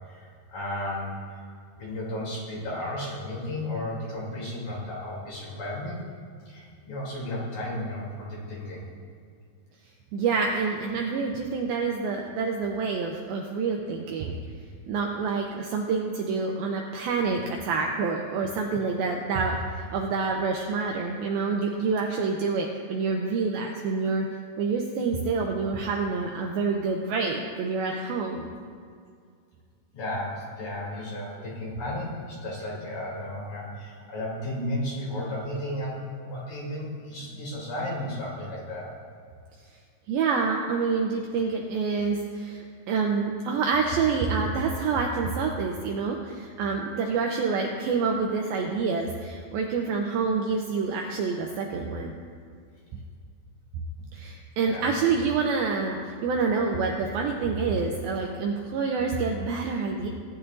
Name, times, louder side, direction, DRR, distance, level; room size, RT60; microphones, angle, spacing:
voice 1, 0.1-1.1 1.8-6.0 6.5-8.8 29.9-38.9 54.6-54.9, left 1 dB, 50° left, -6 dB, 4.7 m, -34 dB
voice 2, 10.1-14.3 14.9-24.3 24.6-28.5 40.1-52.1 54.1-60.1, right 4 dB, 80° right, 1 dB, 2.2 m, -27 dB
18.5 x 11.0 x 2.7 m, 2.2 s
omnidirectional pair, 5.0 m